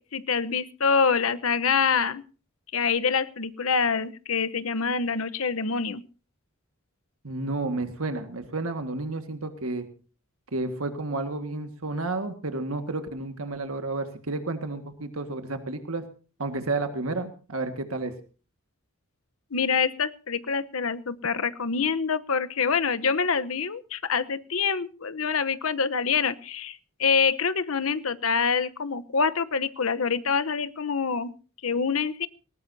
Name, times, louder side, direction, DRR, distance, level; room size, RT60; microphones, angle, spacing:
voice 1, 0.0-2.2 2.7-6.0 19.5-31.3 31.6-32.3, left 5 dB, 80° left, 13 dB, 1.0 m, -26 dB
voice 2, 7.2-9.9 10.5-16.1 16.4-18.1, right 2 dB, 85° right, 7 dB, 1.8 m, -31 dB
19.5 x 19.0 x 2.8 m, 0.37 s
head